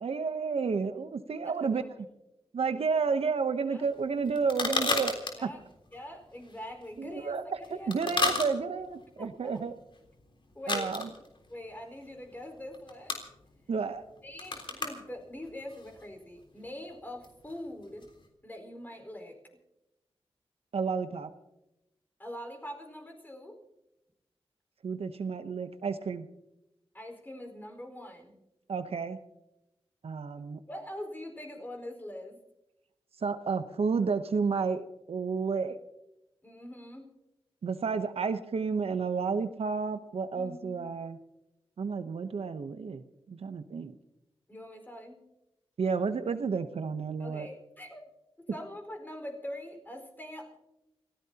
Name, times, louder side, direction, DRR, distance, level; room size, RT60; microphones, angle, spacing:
voice 1, 0.0-1.8 2.5-5.1 5.4-5.5 7.0-7.4 7.7-9.7 10.7-11.1 13.7-14.0 20.7-21.3 24.8-26.3 28.7-29.2 30.0-30.6 33.2-35.8 37.6-41.2 41.8-43.9 45.8-47.5, right 5 dB, 75° right, 9 dB, 0.9 m, -31 dB
voice 2, 1.4-1.9 3.7-3.9 5.4-5.6 5.9-8.3 9.2-9.6 10.5-10.9 11.5-13.2 14.2-18.1 18.4-19.4 22.2-23.6 26.9-28.4 30.7-32.4 36.4-37.1 40.3-40.9 44.5-45.3 47.2-48.1 48.5-50.5, left 1 dB, 20° left, 3 dB, 4.7 m, -43 dB
sound 1, 3.8-18.3, left 3 dB, 55° left, 3.6 m, -35 dB
29.0 x 16.0 x 2.9 m, 0.92 s
wide cardioid pair, 80°, 10 cm